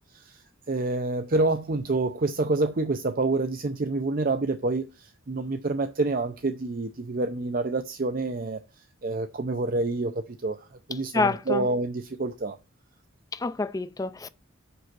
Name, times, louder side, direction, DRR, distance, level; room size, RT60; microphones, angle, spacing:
voice 1, 0.7-8.6 9.0-12.6, right 2 dB, 45° right, 0.5 m, -27 dB
voice 2, 11.1-11.6 13.3-14.3, left 3 dB, 15° left, 0.3 m, -27 dB
6.3 x 5.4 x 5.9 m
head